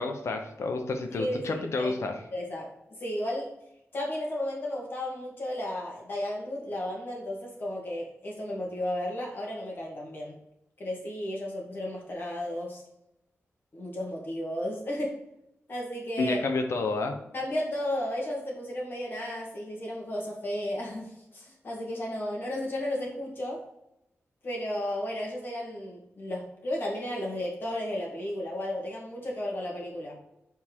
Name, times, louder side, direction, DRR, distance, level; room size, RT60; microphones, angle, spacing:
voice 1, 0.0-2.1 16.2-17.1, left 3 dB, 75° left, 5 dB, 1.1 m, -29 dB
voice 2, 1.1-2.0 2.3-2.7 3.0-3.5 3.9-10.3 10.8-12.8 13.7-15.2 15.7-16.4 17.3-23.6 24.4-30.2, left 1 dB, 50° left, -2 dB, 2.1 m, -33 dB
6.0 x 4.5 x 4.7 m, 0.84 s
wide cardioid pair, 170°, 5 cm